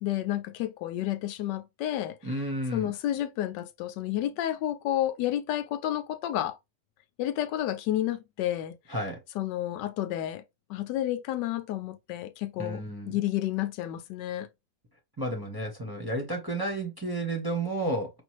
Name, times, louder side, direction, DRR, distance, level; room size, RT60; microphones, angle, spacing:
voice 1, 0.0-2.2 2.7-6.6 7.2-8.8 9.3-10.4 10.7-14.5, left 12 dB, 80° left, 1.2 m, -30 dB
voice 2, 2.2-2.9 8.9-9.2 12.6-13.2 15.2-18.1, right 1 dB, 15° right, 0.9 m, -31 dB
5.3 x 2.5 x 3.0 m
omnidirectional pair, 1.9 m